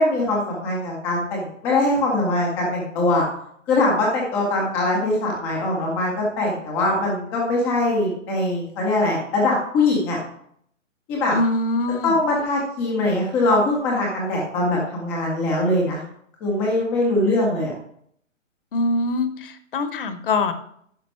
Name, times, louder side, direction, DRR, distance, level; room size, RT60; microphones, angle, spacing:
voice 1, 0.0-3.2 3.7-10.2 11.1-11.4 12.0-16.0 16.4-17.7, left 2 dB, 5° left, -2 dB, 0.5 m, -22 dB
voice 2, 11.3-12.1 18.7-20.5, left 2 dB, 40° left, 11 dB, 1.0 m, -23 dB
10.5 x 5.9 x 4.4 m, 0.66 s
hypercardioid pair, 140°, 39 cm